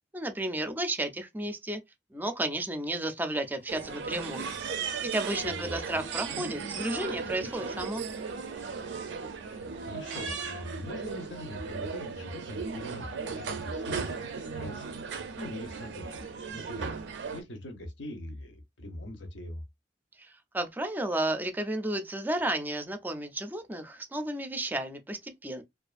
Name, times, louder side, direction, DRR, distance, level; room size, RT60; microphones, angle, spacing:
voice 1, 0.1-1.8 2.1-4.6 5.0-8.0 20.2-25.6, right 1 dB, 10° right, 0.3 m, -33 dB
sound 1, 3.4-8.7, right 1 dB, 45° left, 0.5 m, -50 dB
sound 2, 3.7-17.4, right 5 dB, 75° right, 0.4 m, -36 dB
voice 2, 5.4-6.0 9.6-14.8 15.4-16.2 16.5-16.9 17.3-19.6, left 1 dB, 85° left, 0.7 m, -42 dB
2.5 x 2.3 x 2.4 m
head